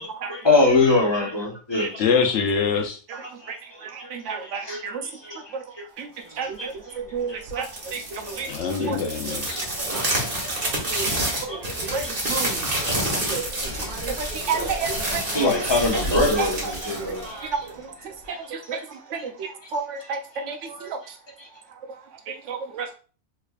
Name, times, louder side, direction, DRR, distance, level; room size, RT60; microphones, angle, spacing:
voice 1, 0.0-2.0 3.4-4.1 4.6-4.8 5.2-5.3 6.4-6.7 7.3-7.4 8.5-8.9 9.7-9.9 11.0-11.7 12.8-13.0 15.2-17.7 20.3-20.9, left 3 dB, 25° left, 1.0 m, -24 dB
voice 2, 2.0-3.0 8.5-9.7, left 6 dB, 80° left, 0.9 m, -24 dB
voice 3, 4.1-5.0 6.0-6.1 6.4-6.7 7.1-7.6 7.9-8.5 8.8-9.0 10.9-11.1 11.9-12.5 13.3-13.4 13.9-14.1 14.5-15.2 16.4-16.5 17.5-17.6 18.7-18.8 19.1-20.2 20.5-20.6 22.5-22.9, right 5 dB, 90° right, 1.0 m, -30 dB
sound 1, 7.5-17.8, right 1 dB, 50° right, 1.4 m, -28 dB
3.3 x 3.2 x 2.4 m
omnidirectional pair, 1.2 m